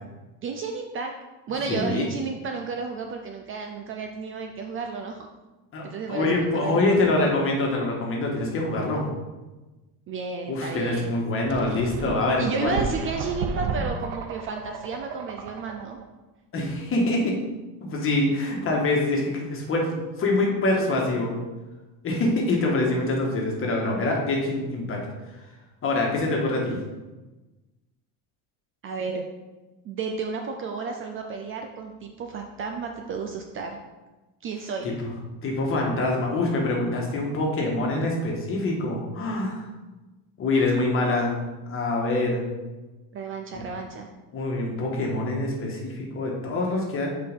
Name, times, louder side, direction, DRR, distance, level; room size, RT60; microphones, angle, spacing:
voice 1, 0.4-1.1 1.5-5.3 5.8-7.0 10.1-11.1 12.4-16.0 28.8-29.2 29.8-33.8 34.4-34.9 43.1-44.1, right 4 dB, 35° right, 4 dB, 0.4 m, -32 dB
voice 2, 1.7-2.1 5.7-5.8 6.1-9.0 10.5-12.8 16.5-17.3 17.8-21.3 22.0-25.0 25.8-26.8 34.8-35.1 35.4-39.6 40.4-41.4 41.7-42.4 43.5-43.6 44.3-47.1, left 2 dB, 30° left, -1 dB, 1.5 m, -25 dB
sound 1, 11.5-16.0, right 5 dB, 85° right, 0.7 m, -33 dB
7.6 x 4.7 x 3.6 m, 1.1 s
cardioid pair, 160°, 40 cm